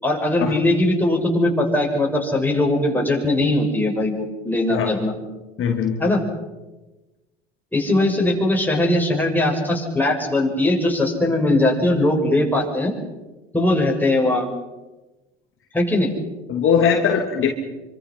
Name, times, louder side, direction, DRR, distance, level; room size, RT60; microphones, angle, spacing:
voice 1, 0.0-5.1 6.0-6.2 7.7-12.9 13.5-14.5 15.7-16.1, left 1 dB, 5° left, -1 dB, 7.3 m, -20 dB
voice 2, 5.6-6.0 16.5-17.5, left 7 dB, 40° left, 2 dB, 3.2 m, -20 dB
27.0 x 25.5 x 5.8 m, 1.1 s
hypercardioid pair, 80°, 31 cm